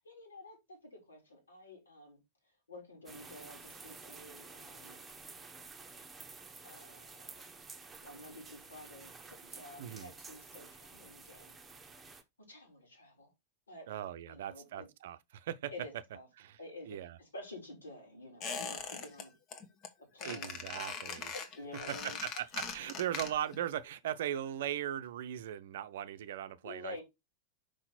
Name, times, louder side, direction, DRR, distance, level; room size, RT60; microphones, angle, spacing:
voice 1, 0.0-2.2 2.7-5.0 6.6-7.5 8.0-11.5 11.8-12.2 12.5-13.3 13.7-13.9 14.3-14.9 15.7-16.3 16.6-19.3 20.1-20.6 21.3-22.2 22.8-22.9 26.6-27.0, left 2 dB, 75° left, 3.7 m, -50 dB
sound 1, 3.1-12.2, right 4 dB, 10° right, 1.1 m, -51 dB
voice 2, 9.8-10.1 13.9-15.7 16.4-16.6 16.9-17.2 20.2-21.3 22.0-27.0, right 11 dB, 55° right, 0.6 m, -39 dB
Squeak, 18.4-19.2 19.5-19.9 20.2-23.6 23.9-24.0, left 5 dB, 35° left, 1.2 m, -41 dB
5.8 x 5.1 x 4.2 m
figure-of-eight pair, 90°, 0 cm